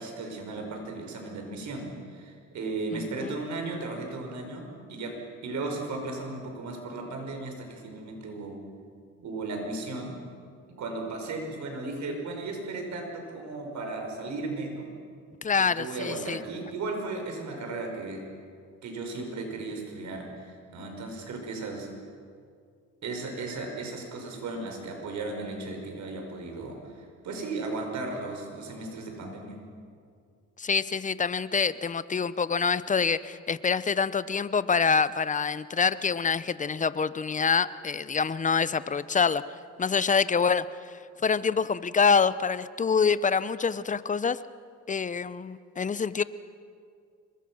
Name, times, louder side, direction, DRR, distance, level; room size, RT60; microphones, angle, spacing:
voice 1, 0.0-8.6 9.2-10.2 10.8-14.9 15.6-18.2 18.8-21.9 23.0-29.6, right 3 dB, 70° right, 3 dB, 5.4 m, -36 dB
voice 2, 2.9-3.4 15.4-16.4 30.6-39.4 39.8-40.7 41.2-44.4 44.9-46.2, left 5 dB, 25° left, 16 dB, 0.7 m, -26 dB
26.0 x 22.5 x 6.3 m, 2.3 s
cardioid pair, 90°, 30 cm